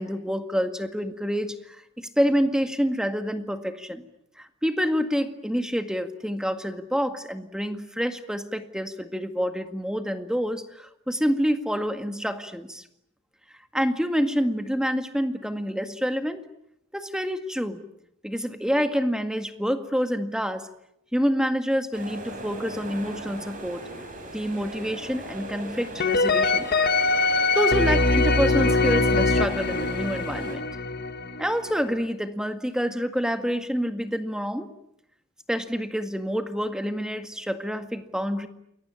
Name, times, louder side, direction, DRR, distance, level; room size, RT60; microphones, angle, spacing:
voice 1, 0.0-4.0 4.4-12.8 13.7-16.4 16.9-17.8 18.2-20.7 21.1-23.9 24.3-26.7 27.5-30.7 31.4-34.7 35.5-38.5, equal, 5° right, 8 dB, 1.9 m, -27 dB
Swimming pool indoor large, 21.9-30.6, right 1 dB, 40° right, 6.9 m, -39 dB
sound 1, 26.0-31.9, left 3 dB, 50° left, 1.5 m, -23 dB
28.5 x 22.5 x 8.9 m, 0.77 s
head